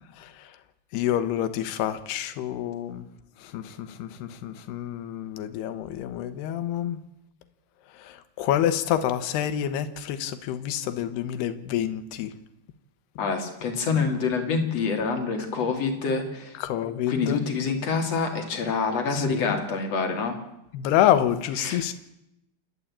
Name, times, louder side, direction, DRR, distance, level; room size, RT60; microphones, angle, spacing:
voice 1, 0.9-3.1 3.4-7.0 8.0-12.3 16.6-17.4 19.1-19.5 20.7-21.9, left 11 dB, 80° left, 10 dB, 3.2 m, -27 dB
voice 2, 13.2-16.6 17.1-20.4 21.6-21.8, left 4 dB, 45° left, 4 dB, 3.2 m, -26 dB
28.0 x 12.0 x 8.6 m, 0.86 s
omnidirectional pair, 4.7 m